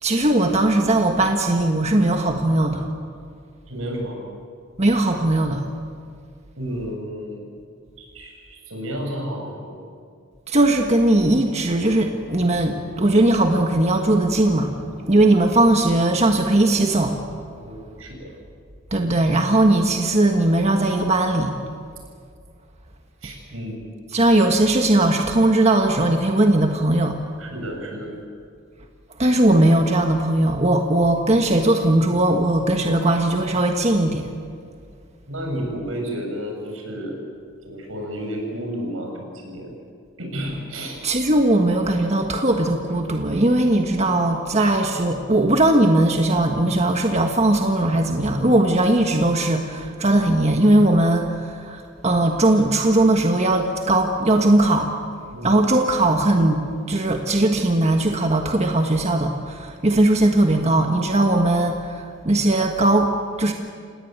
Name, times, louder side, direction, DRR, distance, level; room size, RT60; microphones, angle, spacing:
voice 1, 0.0-2.9 4.8-5.6 10.5-17.2 18.9-21.5 24.1-27.2 29.2-34.3 41.0-54.9 55.4-63.5, right 1 dB, 35° right, 4 dB, 1.5 m, -19 dB
voice 2, 3.7-4.2 6.6-7.4 8.0-9.7 17.6-18.3 23.2-23.8 27.4-28.1 35.3-37.2 37.6-39.7 40.2-41.0 44.6-44.7 55.3-55.5, equal, 85° right, 2 dB, 6.9 m, -31 dB
27.5 x 19.0 x 9.0 m, 2.2 s
head